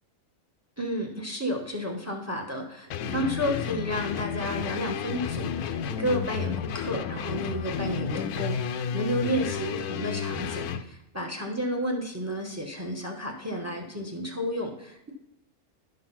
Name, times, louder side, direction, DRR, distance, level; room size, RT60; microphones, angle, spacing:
voice 1, 0.8-15.1, equal, 15° right, 3 dB, 0.7 m, -31 dB
sound 1, 2.9-10.8, left 7 dB, 80° left, 1.1 m, -32 dB
11.5 x 3.8 x 5.8 m, 0.83 s
omnidirectional pair, 1.6 m